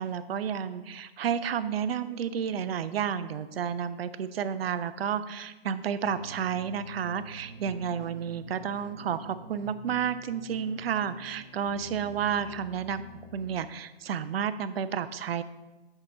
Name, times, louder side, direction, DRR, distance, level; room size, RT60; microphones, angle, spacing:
voice 1, 0.0-13.0 13.3-15.4, right 8 dB, 70° right, 13 dB, 0.5 m, -31 dB
sound 1, 6.0-13.6, right 1 dB, ahead, 0.5 m, -47 dB
6.6 x 2.9 x 5.3 m, 1.1 s
hypercardioid pair, 165°, 31 cm